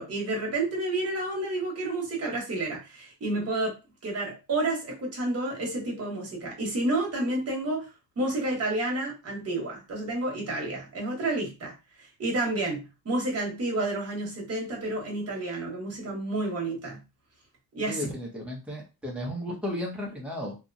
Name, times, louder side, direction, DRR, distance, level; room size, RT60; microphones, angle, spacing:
voice 1, 0.0-3.8 4.0-7.9 8.2-11.7 12.2-17.0 17.7-18.0, right 2 dB, 35° right, -1 dB, 1.1 m, -30 dB
voice 2, 17.9-20.6, left 1 dB, 5° right, -2 dB, 0.7 m, -34 dB
2.8 x 2.2 x 2.5 m, 0.28 s
cardioid pair, 165°, 41 cm